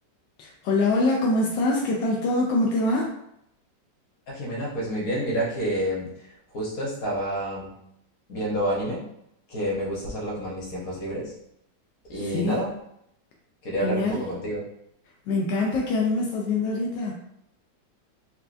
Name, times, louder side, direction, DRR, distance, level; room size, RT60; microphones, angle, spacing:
voice 1, 0.4-3.1 12.2-12.6 13.8-14.2 15.3-17.1, left 2 dB, 85° left, -1 dB, 1.3 m, -24 dB
voice 2, 4.3-6.1 6.5-7.7 8.3-9.0 9.5-11.3 12.1-12.7 13.6-14.6, equal, 55° left, -5 dB, 1.5 m, -28 dB
4.5 x 2.2 x 2.5 m, 0.77 s
omnidirectional pair, 1.9 m